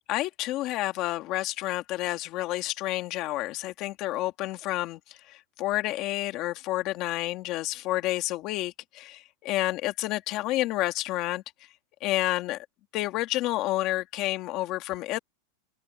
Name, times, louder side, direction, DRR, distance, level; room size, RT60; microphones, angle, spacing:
voice 1, 0.1-11.4 12.0-12.7 12.9-15.2, left 16 dB, 30° left, 2.1 m, -30 dB
open air
supercardioid pair, 175°, 0 cm